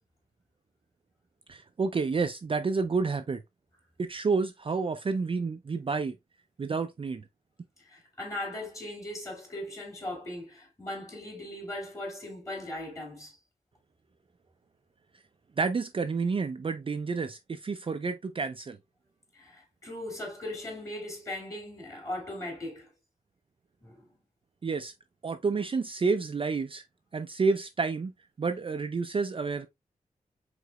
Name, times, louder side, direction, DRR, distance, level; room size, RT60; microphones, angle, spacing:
voice 1, 1.5-3.4 4.0-6.1 6.6-7.2 15.6-18.8 24.6-24.9 25.2-26.8 27.1-28.1 28.4-29.7, right 4 dB, 40° right, 0.4 m, -29 dB
voice 2, 7.8-13.4 19.3-22.9 23.8-24.1, left 1 dB, 20° left, 2.6 m, -39 dB
4.8 x 3.8 x 2.2 m
wide cardioid pair, 90°, 15 cm